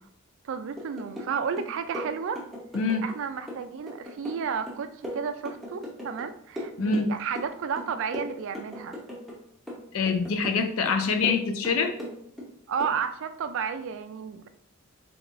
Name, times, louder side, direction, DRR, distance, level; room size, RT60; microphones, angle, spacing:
voice 1, 0.4-2.4 3.0-9.0 12.7-14.5, right 6 dB, 55° right, 9 dB, 0.3 m, -32 dB
sound 1, 0.8-1.3 1.6-3.2 3.5-6.3 6.6-7.5 7.8-9.4 9.7-10.6 10.9-12.5 12.8-13.0, equal, ahead, 0.6 m, -38 dB
voice 2, 2.7-3.1 6.8-7.1 9.9-11.9, left 4 dB, 65° left, 7 dB, 0.4 m, -25 dB
3.4 x 3.0 x 2.5 m, 0.65 s
head